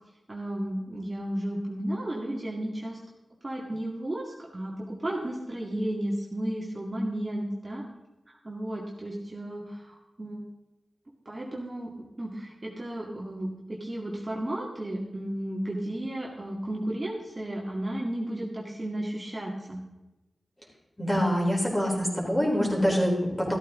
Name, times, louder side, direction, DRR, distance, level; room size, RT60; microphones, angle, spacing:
voice 1, 0.3-3.0 3.4-7.8 8.3-10.4 11.3-11.9 12.2-19.8, right 1 dB, 30° right, -3 dB, 2.1 m, -33 dB
voice 2, 21.0-23.6, equal, 10° left, -2 dB, 4.1 m, -25 dB
14.0 x 13.0 x 3.7 m, 1.0 s
wide cardioid pair, 100°, 0 cm